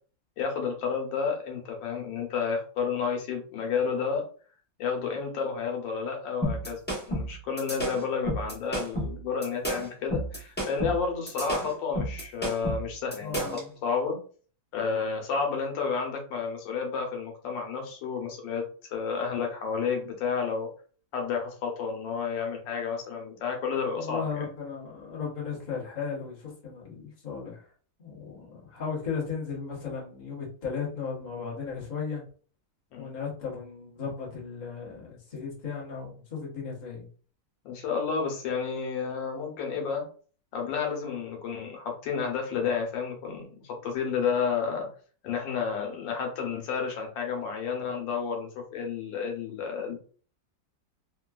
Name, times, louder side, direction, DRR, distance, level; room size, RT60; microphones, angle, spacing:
voice 1, 0.4-4.2 4.8-14.2 14.7-18.6 18.9-20.7 21.1-24.5 32.9-33.1 37.6-40.0 40.5-44.9 45.2-50.0, left 5 dB, 90° left, 2 dB, 1.5 m, -31 dB
sound 1, 6.4-13.7, right 1 dB, 15° left, 0.4 m, -31 dB
voice 2, 13.2-13.7 23.9-27.6 28.0-32.2 33.0-37.1, left 6 dB, 30° left, -4 dB, 0.8 m, -36 dB
3.5 x 2.2 x 2.3 m, 0.42 s
omnidirectional pair, 2.0 m